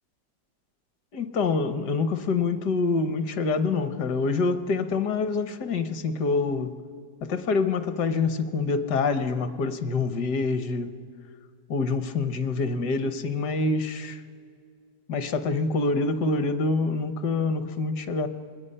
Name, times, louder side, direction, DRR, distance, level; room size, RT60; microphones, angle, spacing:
voice 1, 1.1-6.8 7.2-11.0 11.7-14.2 15.1-18.3, left 4 dB, 65° left, 11 dB, 1.5 m, -26 dB
26.5 x 20.5 x 5.5 m, 2.2 s
omnidirectional pair, 2.0 m